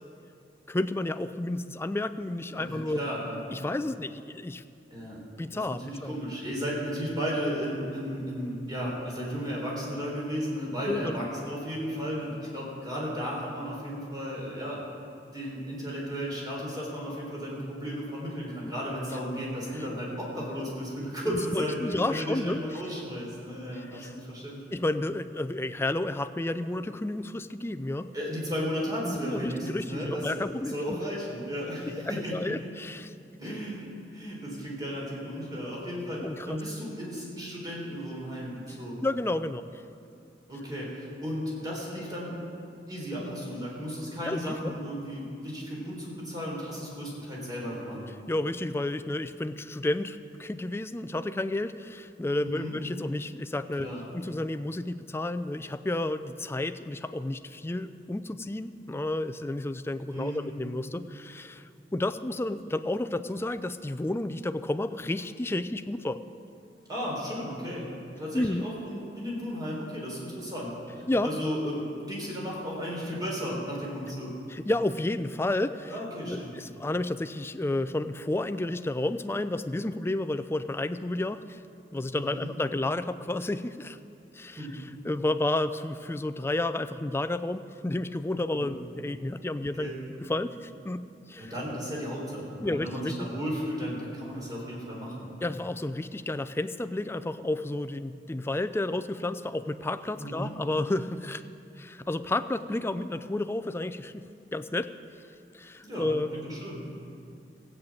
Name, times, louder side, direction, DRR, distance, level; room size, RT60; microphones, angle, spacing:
voice 1, 0.7-3.0 3.5-4.6 5.4-6.1 10.9-11.2 21.2-22.6 23.9-24.1 24.7-28.1 29.0-31.0 31.7-31.9 32.3-33.1 36.2-36.6 39.0-39.7 44.2-44.7 48.3-66.2 68.3-68.7 71.1-71.3 74.5-75.9 76.2-81.6 81.9-84.0 84.3-89.9 90.3-91.5 92.6-93.3 95.4-101.4 101.8-104.2 104.5-104.9 105.5-106.3, left 2 dB, 15° left, 11 dB, 0.4 m, -31 dB
voice 2, 2.5-3.4 4.9-5.2 5.5-14.8 15.3-24.8 28.1-32.7 33.4-33.8 34.1-39.1 40.5-42.3 42.9-48.0 52.4-52.7 53.8-54.1 60.1-60.4 66.9-67.9 68.2-74.3 75.9-76.5 82.1-82.5 84.6-84.8 88.5-88.8 89.8-90.0 91.4-95.3 100.2-100.5 105.8-106.1 106.4-106.9, equal, 25° right, -3 dB, 3.7 m, -34 dB
15.5 x 7.9 x 8.6 m, 2.5 s
head